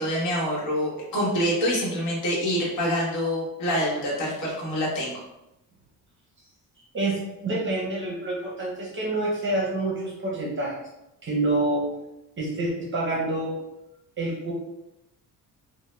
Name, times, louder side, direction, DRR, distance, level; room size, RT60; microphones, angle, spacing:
voice 1, 0.0-5.1, equal, 60° left, -5 dB, 1.0 m, -26 dB
voice 2, 6.9-10.8 11.2-11.8 12.4-13.6 14.2-14.5, right 2 dB, 35° right, -4 dB, 0.6 m, -27 dB
2.1 x 2.1 x 3.0 m, 0.90 s
cardioid pair, 130°, 34 cm